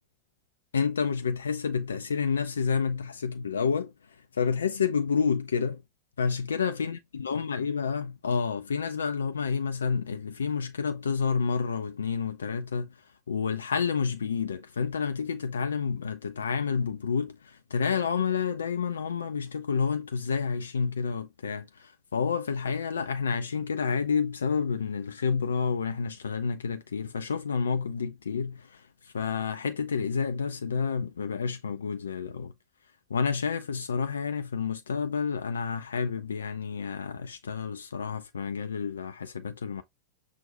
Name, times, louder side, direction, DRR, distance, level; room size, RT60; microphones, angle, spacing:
voice 1, 0.7-5.8 6.2-13.0 13.3-32.5 33.1-39.8, left 6 dB, 70° left, 0.4 m, -29 dB
6.0 x 2.2 x 3.9 m
figure-of-eight pair, 90°, 0 cm